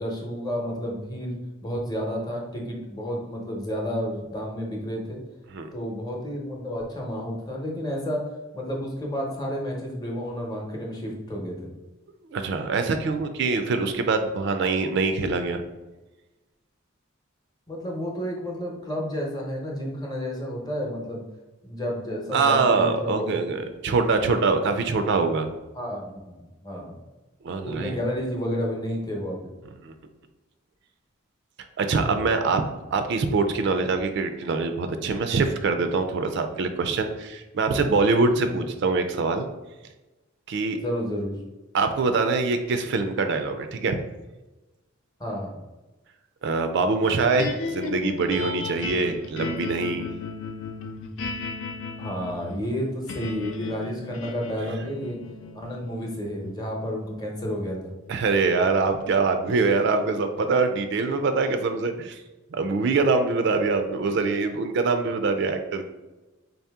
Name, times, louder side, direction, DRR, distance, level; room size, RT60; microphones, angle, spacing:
voice 1, 0.0-5.2 5.7-8.2 8.5-11.7 17.7-21.2 21.6-23.4 23.8-24.0 24.6-24.9 25.7-26.9 27.6-29.5 38.4-38.7 40.8-41.3 45.2-45.6 52.0-55.2 55.5-57.9, equal, 20° left, -1 dB, 0.8 m, -31 dB
voice 2, 12.3-15.6 22.3-25.5 27.4-28.0 29.8-29.9 31.8-32.6 32.9-39.5 40.5-40.8 41.7-44.0 46.4-50.1 58.1-62.2 62.5-65.8, right 4 dB, 60° right, 7 dB, 0.4 m, -24 dB
sound 1, 47.4-59.7, left 4 dB, 70° left, 0.5 m, -36 dB
3.9 x 2.8 x 3.5 m, 1.1 s
head